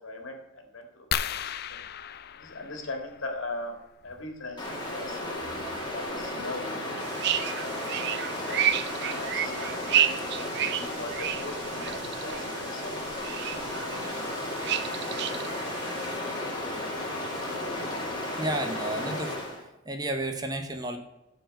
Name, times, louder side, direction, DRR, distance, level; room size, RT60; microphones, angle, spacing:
voice 1, 0.0-1.8 2.3-3.7 4.0-5.2 5.8-6.6 8.3-11.9 12.2-14.9, left 2 dB, 70° left, 3 dB, 2.0 m, -41 dB
sound 1, 1.1-3.5 5.1-5.3 5.9-6.0 6.2-6.5, left 9 dB, 50° left, 0.4 m, -35 dB
Stream, 4.6-19.6, left 1 dB, 20° left, 2.3 m, -34 dB
sound 2, 7.0-16.2, right 10 dB, 55° right, 0.6 m, -31 dB
voice 2, 18.4-19.4 19.9-21.0, right 1 dB, 20° right, 6 dB, 0.8 m, -32 dB
11.5 x 4.6 x 6.4 m, 0.95 s
head